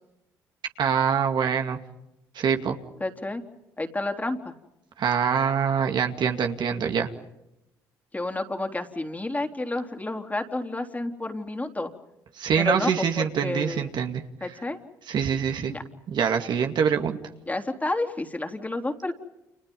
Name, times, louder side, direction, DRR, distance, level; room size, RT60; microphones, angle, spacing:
voice 1, 0.8-1.8 2.3-2.8 5.0-7.1 12.4-14.5 15.1-15.7 16.1-17.2, right 7 dB, 60° right, 5 dB, 2.3 m, -25 dB
voice 2, 3.0-3.4 3.8-4.5 8.1-11.9 12.6-13.9 14.4-14.8 15.7-15.8 17.5-19.1, left 2 dB, 20° left, 5 dB, 3.5 m, -30 dB
30.0 x 29.0 x 5.4 m, 0.89 s
hypercardioid pair, 55°, 9 cm